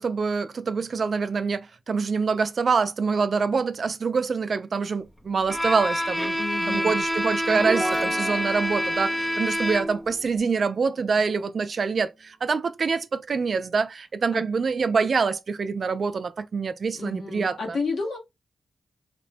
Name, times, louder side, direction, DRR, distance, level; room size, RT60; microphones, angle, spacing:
voice 1, 0.0-6.4 6.7-17.8, right 5 dB, 60° right, 0.3 m, -25 dB
Bowed string instrument, 5.5-10.2, equal, 15° left, 0.5 m, -27 dB
voice 2, 6.3-6.9 14.3-14.4 17.0-18.2, left 3 dB, 75° left, 1.0 m, -31 dB
sound 1, 7.4-11.1, right 1 dB, 10° right, 0.8 m, -34 dB
2.9 x 2.1 x 2.5 m
cardioid pair, 55°, 0 cm